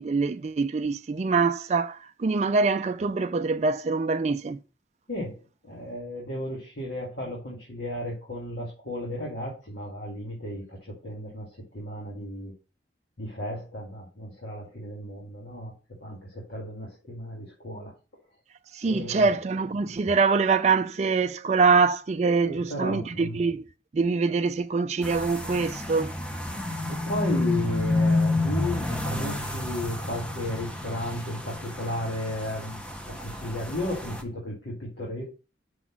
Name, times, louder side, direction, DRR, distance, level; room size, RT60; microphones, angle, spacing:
voice 1, 0.0-4.6 18.7-23.6 23.9-26.1, right 4 dB, 35° right, 0.3 m, -24 dB
voice 2, 5.1-12.5 13.2-15.7 16.0-17.9 18.8-19.3 22.4-23.4 26.5-26.6 26.9-32.8 33.1-35.2, left 1 dB, 60° left, 2.3 m, -34 dB
sound 1, 25.0-34.2, left 2 dB, 5° left, 0.8 m, -30 dB
6.1 x 4.1 x 5.7 m
head